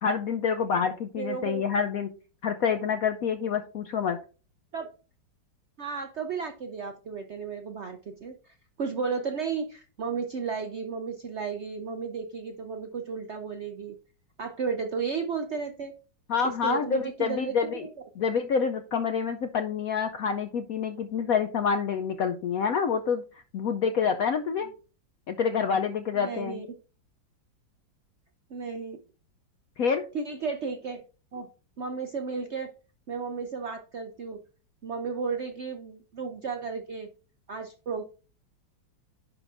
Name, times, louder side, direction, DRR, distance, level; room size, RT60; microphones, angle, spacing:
voice 1, 0.0-2.1 2.4-4.2 16.3-17.9 18.2-23.2 23.5-24.7 25.3-26.6 29.8-30.0, left 6 dB, 70° left, 7 dB, 0.8 m, -27 dB
voice 2, 1.2-1.6 4.7-4.9 5.8-14.0 14.4-15.9 16.4-17.9 24.6-24.7 26.1-26.7 28.5-29.0 30.1-31.0 31.3-31.5 31.8-32.7 33.1-34.4 34.8-37.1 37.5-38.0, right 5 dB, 75° right, 5 dB, 0.6 m, -33 dB
11.0 x 3.9 x 3.4 m, 0.34 s
omnidirectional pair, 2.1 m